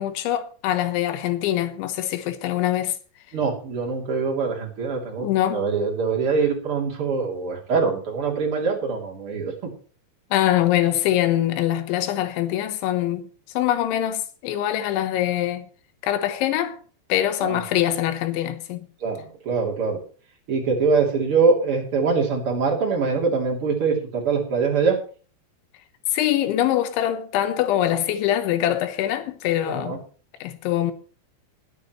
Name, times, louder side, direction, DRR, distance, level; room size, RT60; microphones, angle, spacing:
voice 1, 0.0-3.0 5.2-5.6 10.3-13.3 13.6-15.7 16.0-16.8 17.1-18.9 26.1-30.0 30.4-30.9, left 12 dB, 90° left, 3.5 m, -23 dB
voice 2, 3.3-9.7 17.4-17.6 19.0-20.0 20.5-25.0 29.7-30.0, right 5 dB, 35° right, 3.4 m, -23 dB
21.0 x 10.0 x 3.1 m
omnidirectional pair, 5.2 m